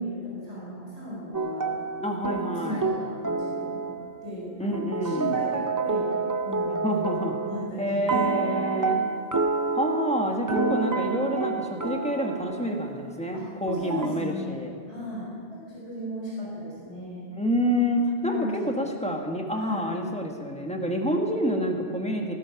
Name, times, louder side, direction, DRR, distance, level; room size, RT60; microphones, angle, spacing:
voice 1, 0.0-1.8 2.6-3.9 4.2-6.1 6.4-6.9 7.5-8.6 13.3-13.4 13.7-17.3 18.3-18.7 19.5-19.9, left 1 dB, 75° left, -7 dB, 5.7 m, -37 dB
sound 1, 1.3-4.3 4.7-7.7 8.1-13.0 13.7-14.1, right 4 dB, 25° right, 0.5 m, -29 dB
voice 2, 2.0-3.0 4.6-5.4 6.7-7.4 7.8-9.0 9.7-14.7 17.4-22.3, equal, 5° left, 1 dB, 1.5 m, -28 dB
16.5 x 12.5 x 5.9 m, 2.1 s
omnidirectional pair, 1.2 m